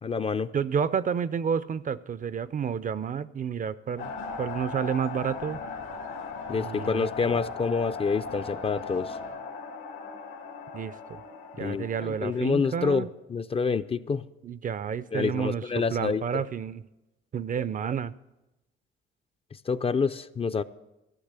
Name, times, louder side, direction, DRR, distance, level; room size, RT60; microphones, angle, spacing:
voice 1, 0.0-0.5 6.5-9.2 11.6-14.2 15.1-16.2 19.7-20.6, left 5 dB, 30° left, 13 dB, 0.4 m, -27 dB
voice 2, 0.5-5.6 6.5-7.4 10.7-11.2 11.5-13.1 14.4-16.8 17.3-18.1, right 7 dB, 40° right, 17 dB, 0.5 m, -30 dB
sound 1, 4.0-13.1, left 4 dB, 85° left, 1.8 m, -38 dB
13.5 x 6.1 x 8.1 m, 0.97 s
cardioid pair, 90°, 20 cm